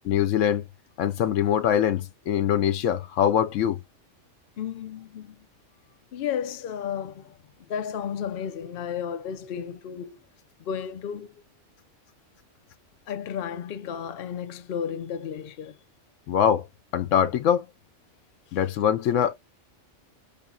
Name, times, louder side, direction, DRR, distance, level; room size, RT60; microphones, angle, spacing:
voice 1, 0.0-0.6 1.0-3.8 16.3-16.7 16.9-17.7 18.5-19.3, left 9 dB, 85° left, 1.0 m, -23 dB
voice 2, 4.6-5.5 6.1-10.2 10.6-11.3 13.1-15.8, left 8 dB, 55° left, 0.8 m, -33 dB
5.1 x 2.7 x 2.3 m
omnidirectional pair, 1.3 m